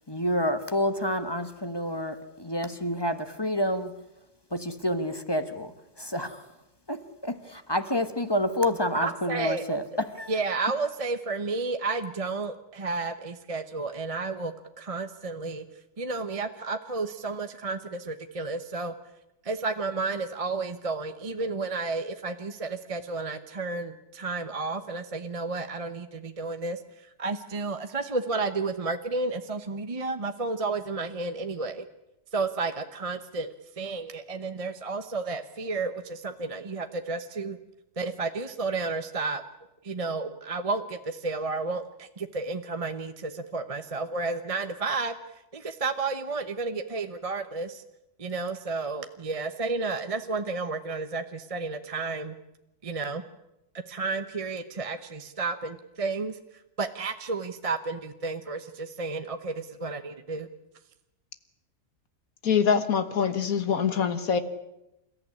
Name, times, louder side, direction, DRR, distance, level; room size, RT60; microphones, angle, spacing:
voice 1, 0.1-4.0 4.5-6.4 6.9-10.3, left 1 dB, 15° left, 10 dB, 1.2 m, -29 dB
voice 2, 8.9-9.8 10.3-15.6 16.0-18.9 19.4-26.8 27.2-31.8 32.3-37.6 38.0-39.4 39.8-45.1 45.5-47.8 48.2-52.3 52.8-53.2 53.9-56.4 56.8-60.5, right 3 dB, 25° right, 8 dB, 0.9 m, -32 dB
voice 3, 62.4-64.4, left 7 dB, 70° left, 11 dB, 1.8 m, -24 dB
28.5 x 14.5 x 9.9 m, 0.91 s
omnidirectional pair, 1.6 m